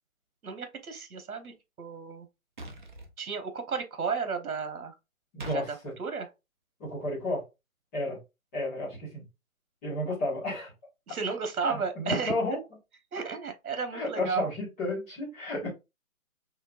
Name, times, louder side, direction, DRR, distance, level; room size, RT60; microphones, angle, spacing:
voice 1, 0.4-2.3 3.2-4.9 5.5-6.3 11.1-12.6 13.1-14.5, right 5 dB, 85° right, 1.1 m, -33 dB
sound 1, 2.6-3.1 5.4-5.6, right 1 dB, 35° right, 0.6 m, -42 dB
voice 2, 5.3-5.9 6.8-7.4 7.9-8.2 8.5-9.2 9.8-10.7 11.6-12.6 13.9-15.7, left 1 dB, 10° left, 1.4 m, -32 dB
4.4 x 3.1 x 2.4 m
hypercardioid pair, 170°, 43 cm